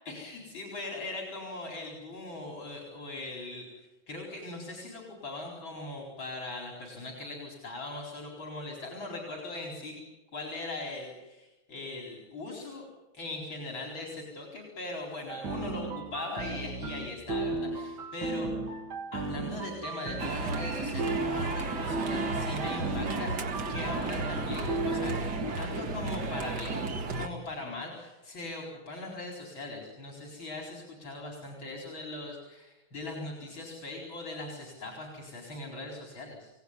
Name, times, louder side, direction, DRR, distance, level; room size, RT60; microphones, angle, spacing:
voice 1, 0.1-3.8 4.1-10.0 10.3-12.9 13.1-18.5 19.1-23.4 23.7-25.2 25.6-26.8 27.1-36.5, left 2 dB, 80° left, 0 dB, 5.2 m, -40 dB
sound 1, 15.3-25.2, right 3 dB, 80° right, 3.1 m, -35 dB
sound 2, 20.2-27.3, right 3 dB, 55° right, 2.4 m, -33 dB
28.5 x 18.0 x 9.8 m, 1.0 s
omnidirectional pair, 2.1 m